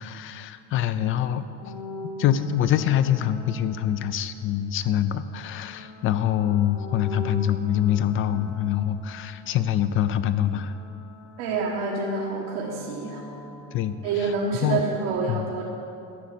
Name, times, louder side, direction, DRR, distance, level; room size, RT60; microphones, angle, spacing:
voice 1, 0.0-1.5 2.2-10.7 13.7-14.3 14.6-14.8 15.3-15.4, left 10 dB, 35° left, 13 dB, 0.4 m, -25 dB
sound 1, 1.6-4.5 5.2-10.0 10.2-15.1, left 1 dB, 90° left, 2.8 m, -40 dB
voice 2, 11.4-13.2 14.0-15.6, right 4 dB, 90° right, -4 dB, 1.6 m, -28 dB
12.0 x 6.0 x 8.4 m, 2.7 s
cardioid pair, 155°, 35 cm